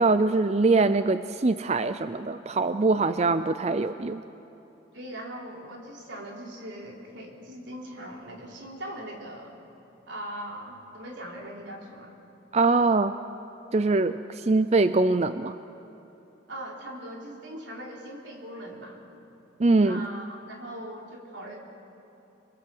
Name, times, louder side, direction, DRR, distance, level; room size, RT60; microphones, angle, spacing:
voice 1, 0.0-4.2 12.5-13.2 13.7-15.6 19.6-20.1, right 3 dB, 35° right, 11 dB, 0.5 m, -23 dB
voice 2, 4.9-9.5 10.1-12.1 16.5-19.0 19.8-21.6, right 1 dB, 85° right, 0 dB, 3.7 m, -40 dB
27.0 x 21.5 x 7.8 m, 3.0 s
head